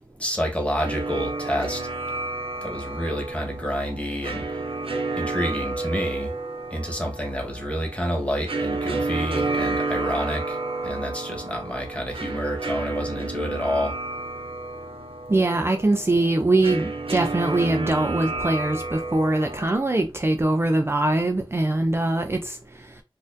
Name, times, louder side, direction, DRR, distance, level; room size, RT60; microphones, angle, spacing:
voice 1, 0.2-1.9 2.6-4.5 5.2-6.4 6.7-10.6 10.8-13.9, equal, 15° left, 1.3 m, -28 dB
sound 1, 0.8-19.7, right 3 dB, 80° right, 0.6 m, -31 dB
voice 2, 15.3-22.6, right 2 dB, 25° right, 0.4 m, -22 dB
4.1 x 2.5 x 2.6 m
wide cardioid pair, 70°, 9 cm